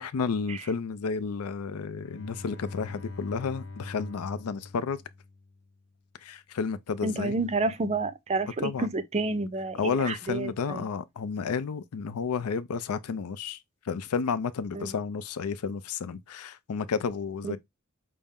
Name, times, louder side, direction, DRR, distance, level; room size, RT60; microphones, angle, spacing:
voice 1, 0.0-5.0 6.2-7.4 8.6-8.9 9.7-13.6 13.9-17.6, left 5 dB, 90° left, 0.4 m, -31 dB
Bowed string instrument, 2.0-5.7, left 3 dB, 55° left, 0.8 m, -42 dB
voice 2, 7.0-10.9 14.7-14.9 17.4-17.6, right 3 dB, 30° right, 0.5 m, -30 dB
5.4 x 2.0 x 3.5 m
head